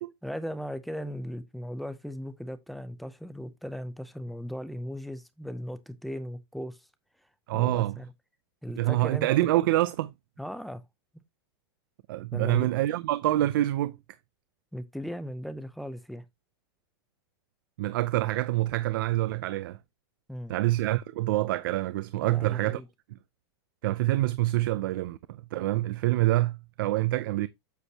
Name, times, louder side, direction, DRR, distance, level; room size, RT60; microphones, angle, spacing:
voice 1, 0.2-6.8 7.5-8.1 8.6-9.5 10.4-10.8 12.3-12.7 14.7-16.2 20.3-20.5 22.2-22.9, equal, ahead, 0.6 m, -37 dB
voice 2, 7.5-8.0 8.8-10.1 12.1-14.0 17.8-19.8 20.5-22.8 23.1-23.2 23.8-27.5, right 16 dB, 55° right, 0.5 m, -26 dB
8.2 x 6.3 x 2.8 m
supercardioid pair, 170°, 13 cm